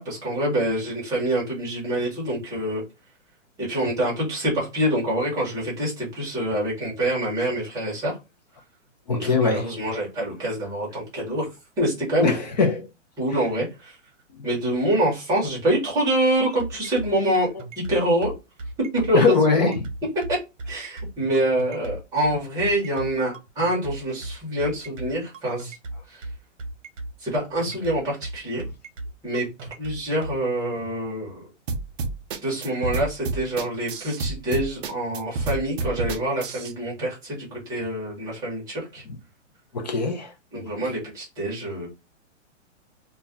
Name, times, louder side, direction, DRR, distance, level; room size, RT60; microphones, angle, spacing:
voice 1, 0.0-2.8 3.6-8.2 9.1-12.3 13.2-14.0 14.4-17.5 17.9-18.3 18.9-19.7 20.3-20.4 20.7-25.8 26.1-26.3 27.2-28.6 29.2-29.4 29.8-31.5 32.4-39.0 40.5-41.9, right 1 dB, 10° right, 0.7 m, -26 dB
voice 2, 9.1-9.7 12.2-12.9 14.3-14.5 19.1-19.7 39.7-40.3, left 4 dB, 35° left, 0.4 m, -21 dB
sound 1, 16.3-30.4, right 2 dB, 75° right, 0.8 m, -36 dB
sound 2, 31.7-36.7, right 3 dB, 50° right, 0.4 m, -29 dB
2.2 x 2.1 x 3.6 m
hypercardioid pair, 160°, 38 cm